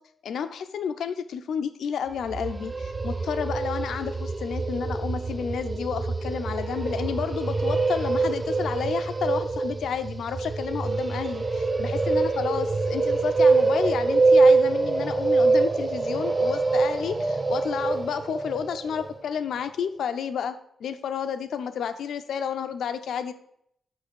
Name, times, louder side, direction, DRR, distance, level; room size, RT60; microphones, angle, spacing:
voice 1, 0.2-20.5 20.8-23.3, left 7 dB, 80° left, 9 dB, 0.7 m, -31 dB
sound 1, 2.1-19.1, right 3 dB, 35° right, 0.8 m, -24 dB
6.0 x 5.5 x 6.7 m, 0.70 s
supercardioid pair, 45°, 0 cm